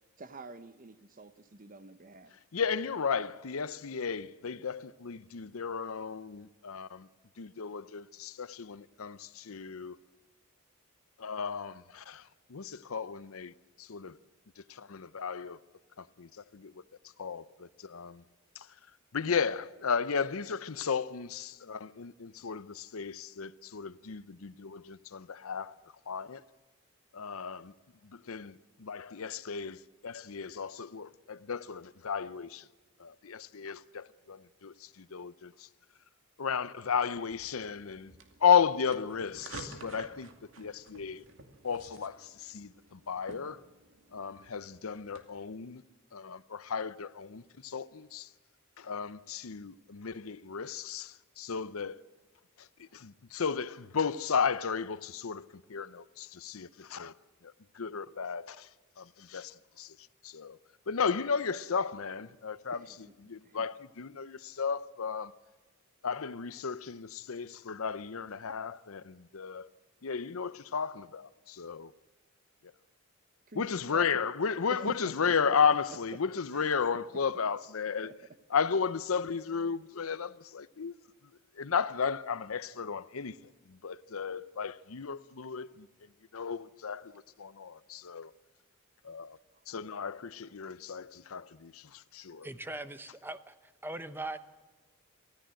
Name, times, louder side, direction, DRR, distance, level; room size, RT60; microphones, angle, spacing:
voice 1, 0.2-2.3 62.7-63.1 63.4-63.7 73.5-74.3 74.7-75.6 76.5-76.9 78.0-78.1 89.5-89.6, right 2 dB, 40° right, 0.9 m, -47 dB
voice 2, 2.5-7.1 7.4-10.0 11.2-14.2 14.6-15.6 16.0-16.7 17.2-18.2 18.5-18.7 19.1-25.8 26.1-26.4 27.1-27.7 28.0-32.7 33.0-35.7 36.4-38.1 38.4-40.3 40.6-41.2 41.6-43.6 44.1-45.8 46.1-48.3 48.8-52.0 52.6-57.1 57.4-58.7 59.0-60.0 60.2-60.6 60.9-62.9 63.2-65.3 66.0-69.7 70.0-71.9 73.5-78.1 78.5-80.9 81.6-83.4 83.7-85.9 86.3-88.3 89.0-89.4 89.7-92.5, left 6 dB, 75° left, 0.7 m, -34 dB
sound 1, 37.3-45.2, right 3 dB, 65° right, 2.5 m, -51 dB
voice 3, 92.4-93.5 93.8-94.4, right 2 dB, 10° right, 0.9 m, -40 dB
24.0 x 15.5 x 7.7 m
head